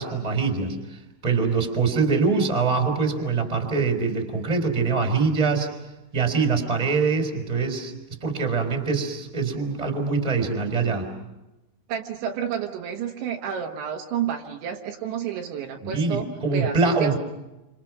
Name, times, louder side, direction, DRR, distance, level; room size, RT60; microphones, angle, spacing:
voice 1, 0.0-5.7 6.1-7.9 8.2-11.1 15.8-17.2, right 4 dB, 10° right, 4 dB, 3.1 m, -24 dB
voice 2, 11.9-17.2, right 8 dB, 70° right, 2 dB, 3.5 m, -30 dB
30.0 x 27.0 x 6.1 m, 1.0 s
omnidirectional pair, 5.8 m